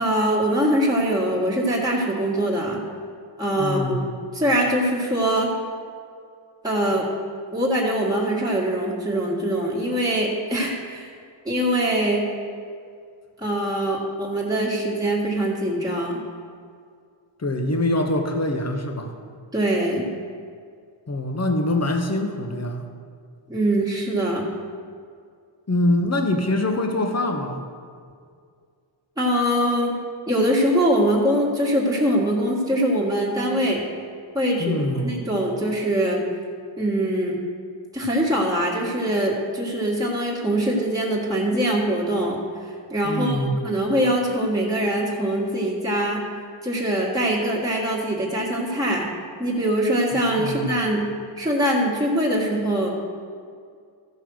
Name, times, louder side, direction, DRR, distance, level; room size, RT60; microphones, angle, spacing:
voice 1, 0.0-2.8 3.4-4.1 4.3-5.5 6.6-7.1 7.5-11.1 11.5-12.2 13.4-16.2 19.5-20.1 23.5-24.5 29.2-30.0 30.3-33.8 34.3-36.2 36.8-37.4 37.9-42.4 42.9-43.4 43.6-46.2 46.6-49.1 49.4-51.1 51.4-52.9, right 1 dB, 10° right, -4 dB, 1.8 m, -23 dB
voice 2, 3.6-4.0 17.4-19.1 21.1-22.9 25.7-27.6 34.6-35.1 43.0-43.6 50.4-50.7, left 1 dB, 30° left, 4 dB, 1.1 m, -24 dB
14.5 x 5.5 x 6.4 m, 2.2 s
wide cardioid pair, 130°, 49 cm